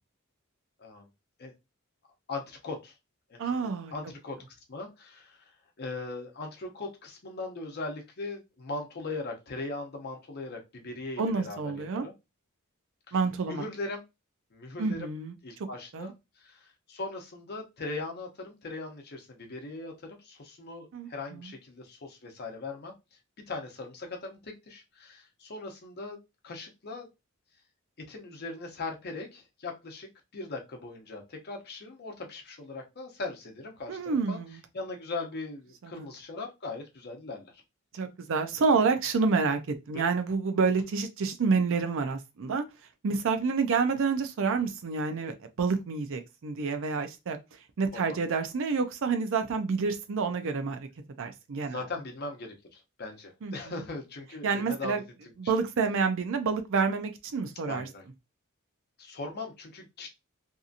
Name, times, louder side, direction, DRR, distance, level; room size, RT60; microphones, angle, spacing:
voice 1, 2.3-2.9 3.3-3.5 3.9-5.5 5.8-12.1 13.1-13.2 13.5-14.0 14.5-15.1 15.4-22.9 23.5-26.2 26.4-27.1 28.1-34.4 34.7-37.6 39.9-40.0 47.9-48.2 51.6-55.0 57.7-58.0 59.0-60.1, left 3 dB, 50° left, 0.7 m, -39 dB
voice 2, 3.4-3.9 11.2-12.0 13.1-13.7 14.8-15.3 15.9-16.1 20.9-21.5 33.9-34.6 35.8-36.1 37.9-42.7 43.0-47.4 47.8-50.9 51.2-51.8 53.4-53.8 54.4-55.0 55.4-57.9, right 4 dB, 60° right, 0.5 m, -28 dB
2.7 x 2.6 x 2.4 m
head